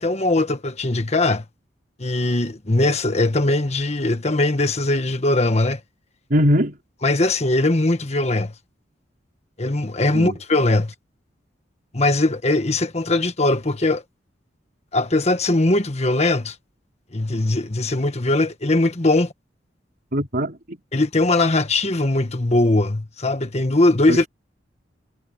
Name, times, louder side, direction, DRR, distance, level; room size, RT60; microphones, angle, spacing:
voice 1, 0.0-1.4 2.0-5.8 7.0-8.5 9.6-10.9 11.9-14.0 14.9-16.5 17.1-19.3 20.9-24.3, left 2 dB, 35° left, 1.5 m, -20 dB
voice 2, 6.3-6.8 10.1-10.4 20.1-20.8 24.1-24.3, equal, 55° right, 4.2 m, -21 dB
head